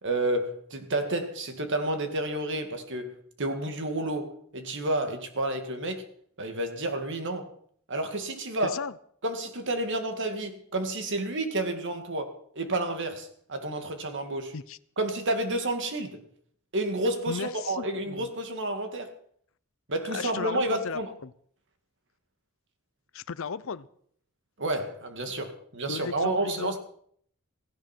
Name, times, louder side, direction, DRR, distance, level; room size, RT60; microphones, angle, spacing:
voice 1, 0.0-6.0 6.4-7.5 7.9-8.8 9.2-14.5 15.0-16.2 16.7-19.1 19.9-21.1 24.6-26.8, right 1 dB, 55° right, 2.2 m, -30 dB
voice 2, 8.6-8.9 14.5-14.8 17.3-18.3 20.0-21.3 23.1-23.9 25.9-26.8, left 5 dB, 65° left, 0.6 m, -36 dB
16.5 x 16.0 x 4.5 m
head